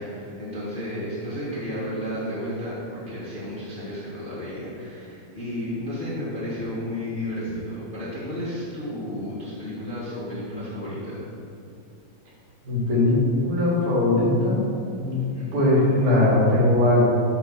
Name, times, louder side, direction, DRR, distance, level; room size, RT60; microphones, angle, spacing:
voice 1, 0.0-11.3 15.3-15.6, equal, 30° left, -10 dB, 1.0 m, -32 dB
voice 2, 12.6-13.2 13.4-14.6 15.0-15.2 15.5-17.0, left 2 dB, 85° right, -7 dB, 3.3 m, -20 dB
7.7 x 3.4 x 5.9 m, 2.5 s
omnidirectional pair, 3.3 m